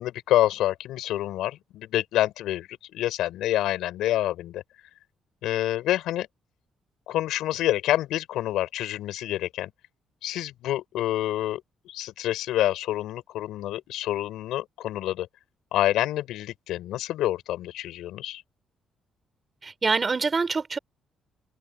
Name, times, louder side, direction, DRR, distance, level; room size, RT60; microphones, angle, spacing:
voice 1, 0.0-4.6 5.4-6.3 7.1-9.7 10.2-15.3 15.7-18.4, left 14 dB, 85° left, 6.7 m, -27 dB
voice 2, 19.6-20.8, right 4 dB, 30° right, 5.7 m, -25 dB
cardioid pair, 90°, 0 cm